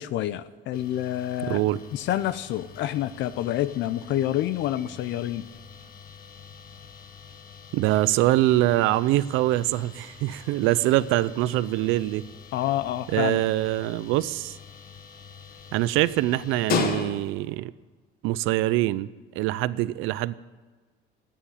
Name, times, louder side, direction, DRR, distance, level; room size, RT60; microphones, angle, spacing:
voice 1, 0.0-1.6 1.9-5.5 12.5-13.4, left 13 dB, 65° left, 14 dB, 0.6 m, -28 dB
sound 1, 0.7-17.6, left 6 dB, 50° left, 1.4 m, -39 dB
voice 2, 1.5-1.8 7.7-12.2 13.1-14.6 15.7-17.7 18.2-19.1 19.3-20.3, right 16 dB, 85° right, 18 dB, 0.5 m, -24 dB
13.5 x 9.3 x 8.8 m, 1.4 s
cardioid pair, 140°, 20 cm